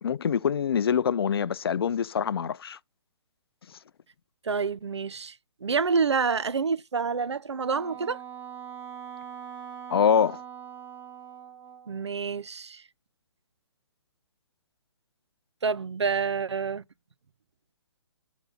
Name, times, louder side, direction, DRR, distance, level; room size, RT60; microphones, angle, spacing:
voice 1, 0.0-2.8 9.9-10.4, left 7 dB, 60° left, 0.4 m, -25 dB
voice 2, 4.4-5.4 5.6-8.2 11.9-12.8 15.6-16.8, right 5 dB, 75° right, 0.5 m, -28 dB
Wind instrument woodwind instrument, 7.6-12.1, right 8 dB, 15° right, 1.9 m, -42 dB
6.6 x 4.0 x 6.1 m
figure-of-eight pair, 130°, 14 cm